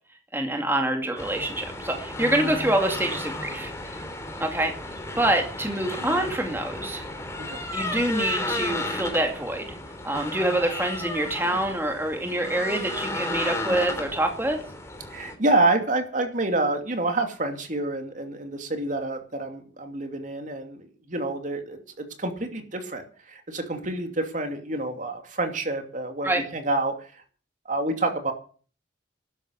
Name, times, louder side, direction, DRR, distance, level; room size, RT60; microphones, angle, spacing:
voice 1, 0.3-3.7 4.4-4.7 5.2-7.0 7.7-9.8 10.0-14.6 26.2-26.4, right 1 dB, 10° right, 3 dB, 2.3 m, -26 dB
sound 1, 1.2-15.3, left 2 dB, 15° left, 3.1 m, -33 dB
voice 2, 15.1-27.2 27.6-28.3, right 2 dB, 45° right, 5 dB, 2.8 m, -28 dB
13.0 x 11.0 x 8.2 m, 0.40 s
head